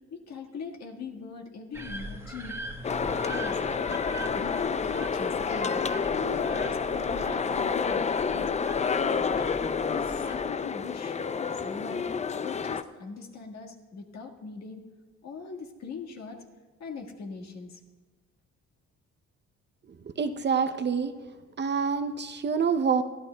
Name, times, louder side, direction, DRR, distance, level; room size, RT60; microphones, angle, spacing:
voice 1, 0.1-2.6 2.9-3.6 4.1-5.8 6.1-8.5 8.9-9.4 9.9-11.2 11.5-12.1 12.4-14.8 15.2-16.4 16.8-17.8, left 5 dB, 60° left, 2 dB, 1.7 m, -40 dB
sound 1, 1.7-10.5, right 2 dB, 10° right, 1.1 m, -41 dB
sound 2, 2.8-12.8, left 5 dB, 25° left, 0.4 m, -29 dB
voice 2, 20.2-21.1 21.6-23.0, right 6 dB, 35° right, 9 dB, 0.7 m, -26 dB
22.5 x 13.0 x 2.3 m, 1.4 s
cardioid pair, 90°, 30 cm